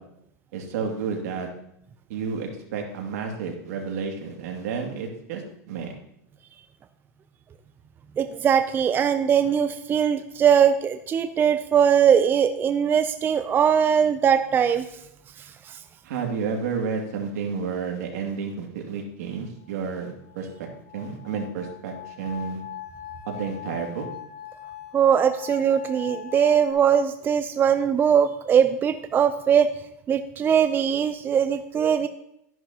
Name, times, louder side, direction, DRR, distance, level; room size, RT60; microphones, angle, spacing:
voice 1, 0.5-1.5 2.1-5.4 5.7-5.9 16.0-20.5 20.9-22.6 23.3-24.0, right 5 dB, 75° right, 2 dB, 2.4 m, -31 dB
voice 2, 8.2-14.9 15.7-15.8 24.9-29.7 30.1-32.1, right 8 dB, 25° right, 10 dB, 0.5 m, -21 dB
sound 1, 19.6-26.7, left 12 dB, 85° left, 3.4 m, -41 dB
12.5 x 10.5 x 2.9 m, 0.77 s
supercardioid pair, 125°, 9 cm